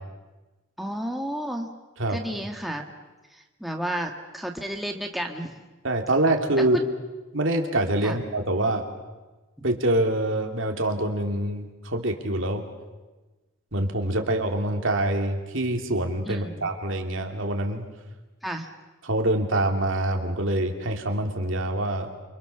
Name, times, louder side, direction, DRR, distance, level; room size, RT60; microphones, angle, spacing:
voice 1, 0.8-1.7 2.1-2.9 3.3-5.5 6.7-6.8 8.0-8.2 16.3-16.7 18.4-18.7, right 1 dB, ahead, 2 dB, 1.7 m, -32 dB
voice 2, 5.8-6.8 7.3-8.8 9.6-12.6 13.7-17.9 19.0-22.1, right 1 dB, 65° right, 3 dB, 3.0 m, -25 dB
29.0 x 25.5 x 6.9 m, 1.2 s
head